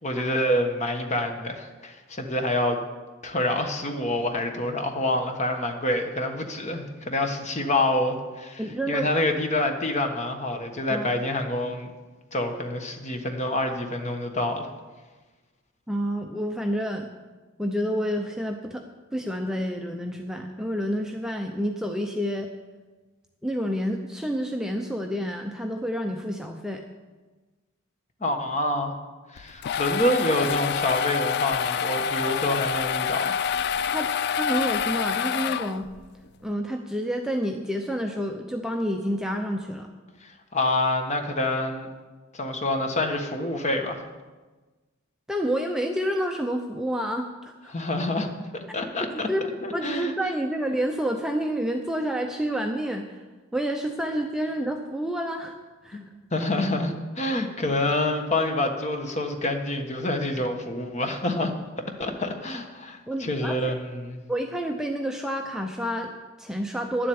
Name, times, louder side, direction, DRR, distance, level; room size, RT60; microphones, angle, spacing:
voice 1, 0.0-2.8 3.2-11.9 12.3-14.7 28.2-28.9 29.3-33.4 40.2-41.9 42.3-44.0 47.7-49.3 49.6-50.1 55.9-56.1 56.3-61.5 62.0-64.2, left 1 dB, 35° left, 4 dB, 1.3 m, -27 dB
voice 2, 8.6-9.1 10.9-11.1 15.9-17.1 17.6-22.5 23.4-26.8 33.9-35.9 36.4-39.9 45.3-47.7 49.1-49.4 49.7-53.2 53.5-55.5 55.8-56.0 63.1-63.8 64.3-67.1, equal, 5° right, 3 dB, 0.6 m, -29 dB
sound 1, 29.4-36.1, left 7 dB, 50° left, 0.3 m, -27 dB
11.0 x 7.7 x 8.6 m, 1.3 s
head